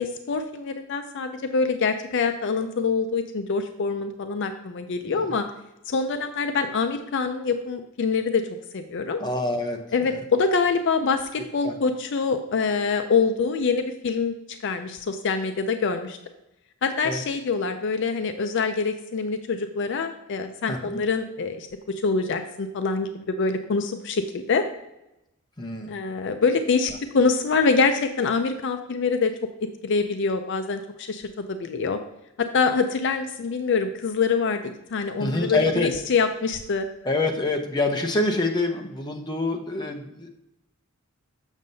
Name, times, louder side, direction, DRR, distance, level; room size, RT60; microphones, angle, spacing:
voice 1, 0.0-5.4 5.9-8.4 8.7-9.2 9.9-16.2 16.8-24.6 25.9-29.3 29.8-32.0 32.4-34.6 34.9-36.9, left 4 dB, 55° left, 7 dB, 0.4 m, -25 dB
voice 2, 9.2-10.2 11.6-11.7 17.0-17.2 20.7-21.0 25.6-25.9 35.2-35.9 37.0-40.3, left 2 dB, 20° left, 3 dB, 0.7 m, -26 dB
7.2 x 6.3 x 2.7 m, 0.89 s
head